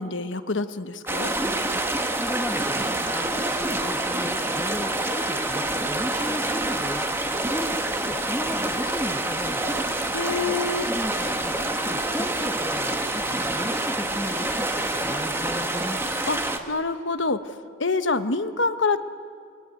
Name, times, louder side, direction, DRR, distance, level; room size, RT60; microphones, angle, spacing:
voice 1, 0.0-1.3 10.1-10.9 16.3-17.5 17.8-19.0, left 3 dB, 70° left, 10 dB, 1.2 m, -26 dB
sound 1, 1.1-16.6, right 1 dB, 10° right, 1.5 m, -27 dB
voice 2, 2.1-7.1 7.5-9.9 10.8-13.2 13.5-16.2, left 1 dB, 5° left, 1 dB, 1.3 m, -35 dB
28.0 x 22.0 x 9.3 m, 2.3 s
head